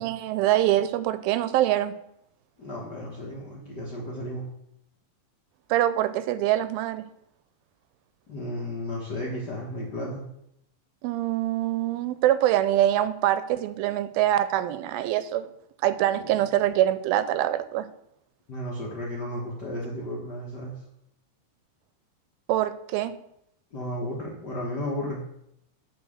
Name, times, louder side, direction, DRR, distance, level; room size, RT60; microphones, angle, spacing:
voice 1, 0.0-1.9 5.7-7.1 11.0-15.5 15.8-17.9 22.5-23.1, right 13 dB, 90° right, 13 dB, 2.4 m, -24 dB
voice 2, 2.6-4.5 8.3-10.3 16.1-16.2 18.5-20.8 23.7-25.2, left 1 dB, 60° left, -5 dB, 1.1 m, -33 dB
9.3 x 4.1 x 6.4 m, 0.75 s
omnidirectional pair, 4.1 m